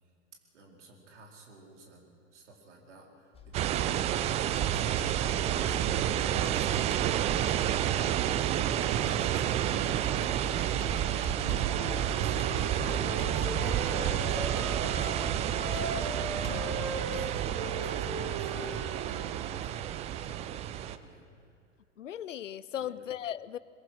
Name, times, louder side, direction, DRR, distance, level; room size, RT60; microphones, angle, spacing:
voice 1, 0.5-6.0 6.4-8.1 8.5-15.3 15.7-16.8 17.1-19.8 20.1-21.5 22.8-22.9, right 2 dB, 60° right, 1 dB, 4.2 m, -51 dB
Computer keyboard, 3.3-17.3, left 3 dB, 15° left, 1.9 m, -49 dB
sound 1, 3.5-21.0, right 11 dB, 15° right, 0.5 m, -30 dB
voice 2, 11.4-11.9 16.5-16.6 22.0-23.6, left 10 dB, 70° left, 19 dB, 0.7 m, -38 dB
Wind instrument woodwind instrument, 11.4-15.2 15.5-19.5, right 1 dB, 45° right, 5.4 m, -39 dB
22.0 x 21.5 x 6.3 m, 2.2 s
figure-of-eight pair, 95°, 39 cm